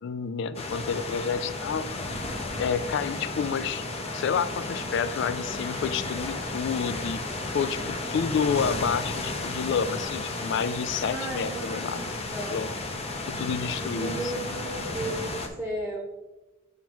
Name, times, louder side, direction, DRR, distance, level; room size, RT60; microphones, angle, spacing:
voice 1, 0.0-2.2 2.6-3.9 4.1-7.2 7.5-12.0 12.5-12.7 13.3-14.6, left 6 dB, 60° left, 15 dB, 0.3 m, -29 dB
sound 1, 0.5-15.5, left 2 dB, 30° left, 0.6 m, -33 dB
voice 2, 10.9-12.6 13.7-16.0, right 2 dB, ahead, -2 dB, 1.0 m, -35 dB
7.2 x 5.8 x 3.0 m, 1.1 s
head